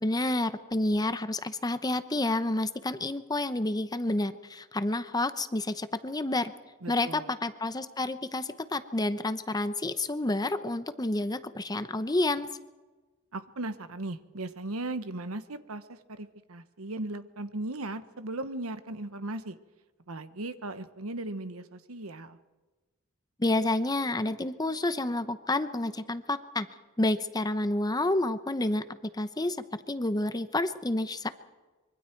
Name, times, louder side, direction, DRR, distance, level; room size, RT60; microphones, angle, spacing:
voice 1, 0.0-6.5 6.9-12.5 23.4-26.7 27.0-31.3, left 2 dB, 20° left, 11 dB, 0.9 m, -29 dB
voice 2, 6.8-7.3 13.3-19.6 20.1-22.4, right 2 dB, 90° right, 11 dB, 1.2 m, -37 dB
25.0 x 23.5 x 4.6 m, 1.2 s
head